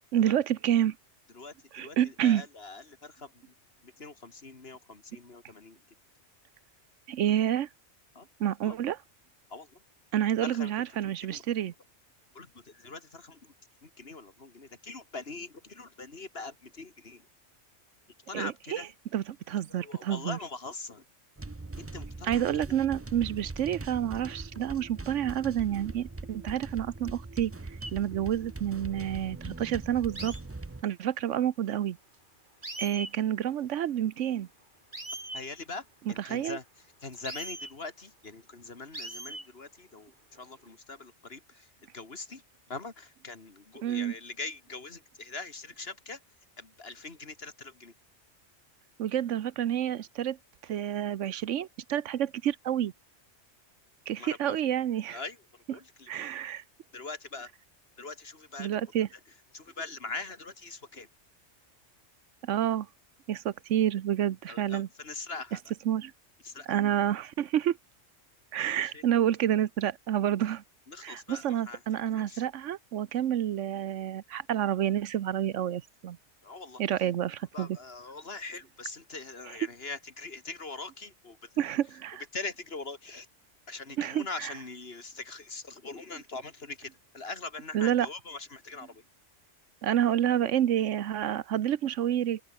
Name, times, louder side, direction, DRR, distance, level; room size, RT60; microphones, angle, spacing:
voice 1, 0.1-1.0 1.7-2.4 7.1-7.7 8.4-9.0 10.1-11.7 18.3-18.8 19.1-20.4 22.2-27.5 27.9-30.3 30.8-32.0 32.8-34.5 36.3-36.6 43.8-44.1 49.0-50.4 50.6-52.9 54.1-55.2 56.1-56.6 58.6-59.1 62.4-62.9 63.3-64.9 65.9-66.1 66.7-67.8 68.5-70.6 71.0-76.2 76.8-77.8 81.6-82.2 84.0-84.5 87.7-88.1 89.8-92.4, right 10 dB, 80° right, 1.1 m, -29 dB
voice 2, 1.3-3.5 3.8-5.8 8.1-8.3 8.6-8.8 9.5-9.8 10.4-10.7 11.0-11.4 12.3-13.5 13.8-17.3 18.3-18.9 19.7-21.0 21.8-22.4 35.3-36.6 37.0-40.1 40.4-42.4 42.7-46.2 46.6-47.9 54.2-54.6 55.1-55.4 55.7-56.3 56.9-57.5 58.0-58.8 59.5-61.1 64.5-65.6 66.4-66.7 68.8-69.0 70.9-71.8 72.1-72.4 76.4-76.8 77.5-81.7 82.3-83.3 83.7-89.0, left 3 dB, 55° left, 2.6 m, -42 dB
sound 1, 21.4-30.8, right 2 dB, 15° right, 0.5 m, -41 dB
sound 2, 27.8-28.0 30.2-30.4 32.1-32.2 32.6-33.1 34.9-35.4 37.1-37.7 38.9-39.5 40.3-40.7, right 1 dB, 40° right, 5.3 m, -39 dB
open air
omnidirectional pair, 1.2 m